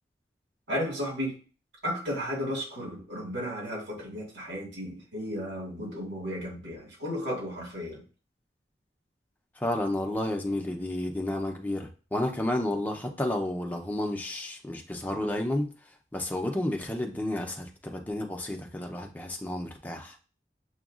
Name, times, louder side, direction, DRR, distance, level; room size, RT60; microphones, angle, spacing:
voice 1, 0.7-1.4 1.8-8.0, equal, 75° right, -3 dB, 1.7 m, -34 dB
voice 2, 9.6-15.7 16.1-20.2, left 1 dB, 10° left, 2 dB, 0.5 m, -31 dB
6.9 x 2.3 x 2.4 m, 0.36 s
head